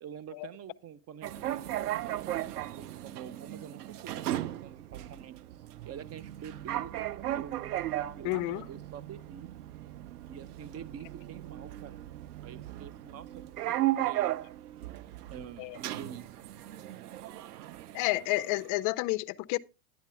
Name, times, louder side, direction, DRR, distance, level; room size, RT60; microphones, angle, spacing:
voice 1, 0.0-2.4 2.7-5.4 5.9-7.6 8.2-9.5 10.3-12.0 12.4-14.3 15.3-16.3, right 8 dB, 35° right, 0.8 m, -47 dB
sound 1, 1.2-18.7, right 14 dB, 80° right, 0.8 m, -36 dB
voice 2, 8.2-8.6 15.6-15.8 17.9-19.6, left 19 dB, 45° left, 0.5 m, -30 dB
10.5 x 9.6 x 3.4 m
hypercardioid pair, 100°, 45 cm